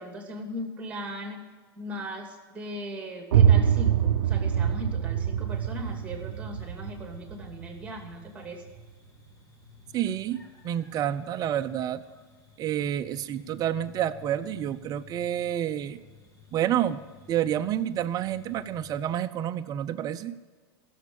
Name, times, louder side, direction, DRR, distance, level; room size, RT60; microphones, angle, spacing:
voice 1, 0.0-1.4 1.8-8.6, equal, 10° right, 3 dB, 2.7 m, -38 dB
sound 1, 3.3-8.9, right 9 dB, 80° right, 0.6 m, -25 dB
sound 2, 5.5-19.2, left 6 dB, 25° left, 2.2 m, -54 dB
voice 2, 9.9-12.0 12.6-16.0 16.5-17.0 17.3-20.4, right 11 dB, 30° right, 9 dB, 0.7 m, -29 dB
16.0 x 7.3 x 8.8 m, 1.4 s
hypercardioid pair, 130°, 13 cm